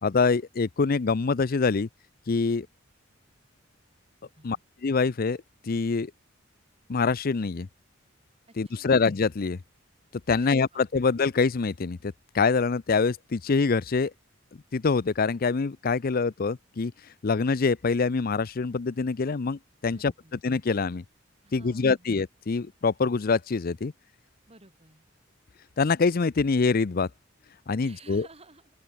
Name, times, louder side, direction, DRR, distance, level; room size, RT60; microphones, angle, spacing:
voice 1, 0.0-1.9 2.3-2.7 4.4-4.6 4.8-6.1 6.9-7.7 8.6-9.6 10.3-14.1 14.7-16.9 17.2-20.1 20.4-21.0 21.5-23.9 25.8-27.1 27.7-28.3, left 4 dB, 45° left, 0.5 m, -25 dB
voice 2, 8.6-9.0 10.3-10.8 19.9-20.4 21.4-22.1 24.5-25.1 27.8-28.7, right 2 dB, 30° right, 7.9 m, -53 dB
open air
head